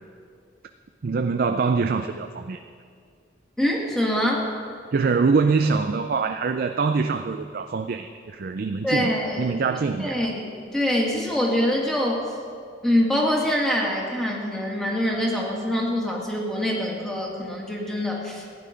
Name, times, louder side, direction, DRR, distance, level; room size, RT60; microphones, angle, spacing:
voice 1, 1.0-2.6 4.9-9.1 9.4-10.3, right 4 dB, 55° right, 7 dB, 0.4 m, -24 dB
voice 2, 3.6-4.5 8.8-9.6 10.0-10.4 10.7-12.3 12.8-18.4, left 1 dB, 5° left, -2 dB, 2.1 m, -24 dB
15.5 x 9.8 x 5.2 m, 2.2 s
head